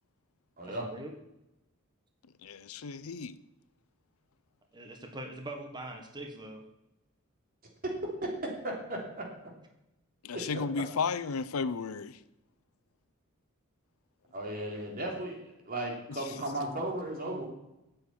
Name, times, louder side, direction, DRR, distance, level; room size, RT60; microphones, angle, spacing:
voice 1, 0.6-1.2 4.7-6.6, right 1 dB, 20° right, 1.5 m, -42 dB
voice 2, 2.4-3.4 10.2-12.2, left 5 dB, 85° left, 0.6 m, -33 dB
voice 3, 8.2-9.3 10.3-10.6 14.3-17.5, right 1 dB, 45° right, 3.2 m, -35 dB
8.8 x 7.9 x 8.7 m
head